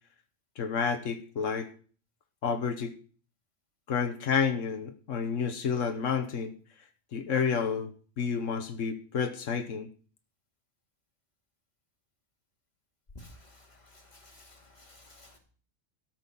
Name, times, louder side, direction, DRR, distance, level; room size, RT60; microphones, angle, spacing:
voice 1, 0.6-1.7 2.4-2.9 3.9-6.5 7.1-9.9, left 6 dB, 90° left, 7 dB, 1.4 m, -30 dB
voice 2, 14.2-15.4, left 1 dB, 35° left, 1 dB, 2.6 m, -52 dB
13.0 x 6.3 x 6.9 m, 0.42 s
omnidirectional pair, 1.3 m